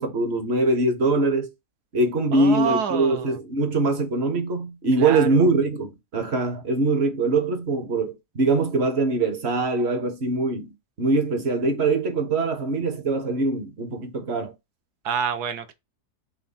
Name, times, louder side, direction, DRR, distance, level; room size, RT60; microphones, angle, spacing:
voice 1, 0.0-1.5 1.9-10.7 11.0-14.5, right 2 dB, 45° right, 1.1 m, -23 dB
voice 2, 2.3-3.4 5.0-5.4 15.0-15.7, right 7 dB, 75° right, 1.2 m, -27 dB
3.7 x 3.3 x 4.0 m
omnidirectional pair, 1.7 m